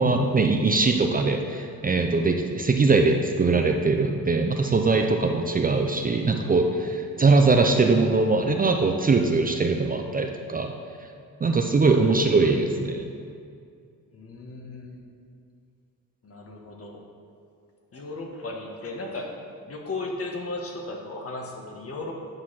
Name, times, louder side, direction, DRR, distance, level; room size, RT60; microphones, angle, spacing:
voice 1, 0.0-10.7 11.4-13.0, right 3 dB, 25° right, 3 dB, 0.6 m, -21 dB
voice 2, 12.0-12.6 14.1-15.0 16.2-17.0 17.9-19.4 19.7-22.1, left 2 dB, 45° left, 1 dB, 1.5 m, -36 dB
9.5 x 4.9 x 5.8 m, 2.3 s
cardioid pair, 105°, 33 cm